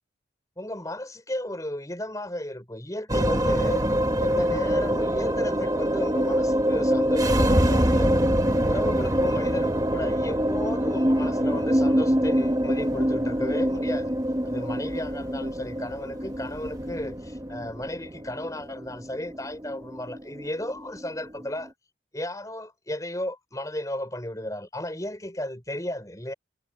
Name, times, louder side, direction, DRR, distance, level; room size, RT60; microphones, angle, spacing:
voice 1, 0.6-3.8 4.2-8.3 8.6-14.1 14.4-21.7 22.1-26.3, left 1 dB, 20° left, 4.9 m, -34 dB
sound 1, 3.1-21.6, equal, 20° right, 1.4 m, -25 dB
head